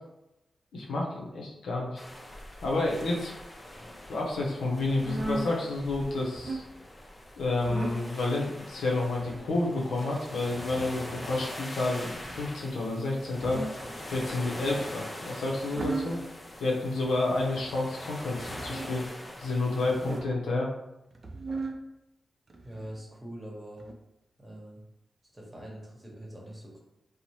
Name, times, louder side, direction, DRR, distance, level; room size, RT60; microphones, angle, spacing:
voice 1, 0.7-2.0 2.6-3.3 4.1-6.6 7.4-13.6 14.1-16.2 16.6-19.0 19.4-20.7, left 2 dB, 90° left, -2 dB, 0.5 m, -30 dB
sound 1, 2.0-20.2, left 1 dB, 35° left, 0.5 m, -43 dB
sound 2, 4.9-5.5 6.2-6.7 7.6-8.1 9.0-9.5 10.5-11.0 12.1-12.5 13.2-13.9 14.5-14.9 15.5-16.2 17.0-17.5 18.3-18.9 19.8-20.5 21.1-21.8 22.5-23.0 23.8-23.9, right 2 dB, 50° right, 0.4 m, -37 dB
voice 2, 22.6-23.9 24.4-24.8 25.3-26.8, right 1 dB, 25° right, -2 dB, 1.0 m, -43 dB
2.6 x 2.0 x 3.0 m, 0.90 s
cardioid pair, 45°, 0 cm